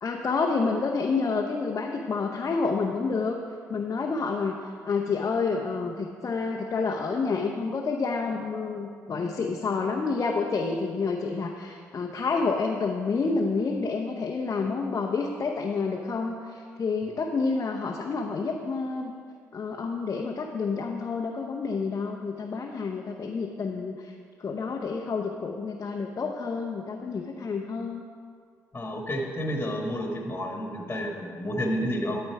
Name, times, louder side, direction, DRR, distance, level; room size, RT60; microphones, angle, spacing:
voice 1, 0.0-3.4 3.7-4.6 4.8-19.1 19.5-24.1 24.4-28.0, left 4 dB, 45° left, 1 dB, 0.8 m, -29 dB
voice 2, 28.7-32.2, equal, 25° left, 0 dB, 1.6 m, -30 dB
12.5 x 4.3 x 4.8 m, 2.1 s
hypercardioid pair, 50°, 7 cm